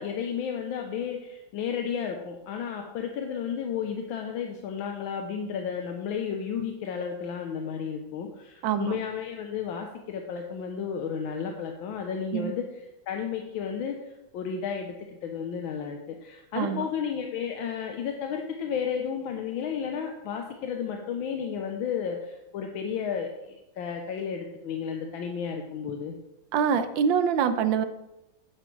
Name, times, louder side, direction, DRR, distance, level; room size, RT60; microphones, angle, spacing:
voice 1, 0.0-12.6 13.1-26.1, left 7 dB, 85° left, 3 dB, 1.5 m, -33 dB
voice 2, 8.6-9.0 12.3-12.5 16.6-16.9 26.5-27.8, right 7 dB, 75° right, 10 dB, 1.3 m, -25 dB
9.6 x 7.6 x 3.2 m, 0.94 s
omnidirectional pair, 2.1 m